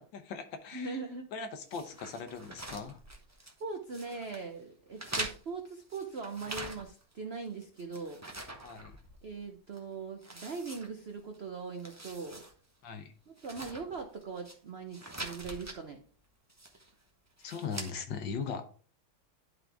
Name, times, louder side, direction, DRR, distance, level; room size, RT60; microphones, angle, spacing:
voice 1, 0.1-1.0 1.3-3.0 8.6-9.0 12.8-13.1 17.4-18.7, left 5 dB, 70° left, 7 dB, 1.5 m, -39 dB
voice 2, 0.7-1.3 3.4-8.2 9.2-12.4 13.3-16.0, right 4 dB, 90° right, 4 dB, 0.5 m, -41 dB
sound 1, 1.7-3.6 3.9-4.4 5.0-7.1 7.4-9.4 9.7-9.8 10.2-11.4 11.7-12.5 12.8-12.9 13.4-14.6 14.9-15.8 16.5-16.9 17.4-17.9, right 2 dB, 25° right, 0.3 m, -43 dB
11.0 x 4.0 x 3.4 m, 0.42 s
omnidirectional pair, 2.2 m